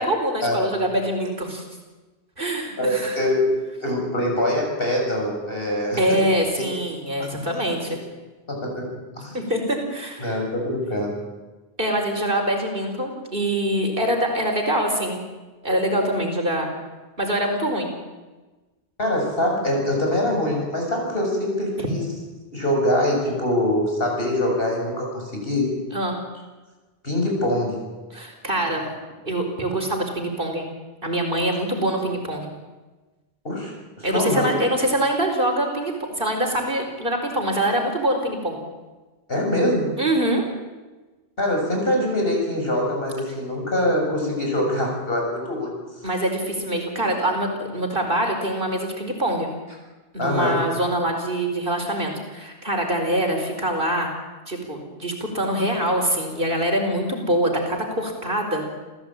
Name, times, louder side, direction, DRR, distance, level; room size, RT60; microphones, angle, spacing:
voice 1, 0.0-1.6 2.4-3.2 6.0-8.0 9.3-10.4 11.8-15.2 15.6-16.7 17.2-17.9 25.9-26.2 28.1-28.9 29.2-30.7 31.0-32.5 34.0-38.6 40.0-40.4 46.0-49.5 50.1-54.1 54.5-58.6, right 1 dB, 55° right, 2 dB, 4.7 m, -24 dB
voice 2, 2.8-3.4 3.8-6.2 7.2-7.3 8.5-8.9 9.2-9.4 10.2-11.1 19.0-22.1 22.5-25.7 27.0-27.8 33.4-34.5 39.3-39.9 41.4-45.7 50.2-50.6, left 1 dB, 60° left, 0 dB, 7.3 m, -23 dB
28.5 x 15.5 x 8.8 m, 1.2 s
omnidirectional pair, 1.1 m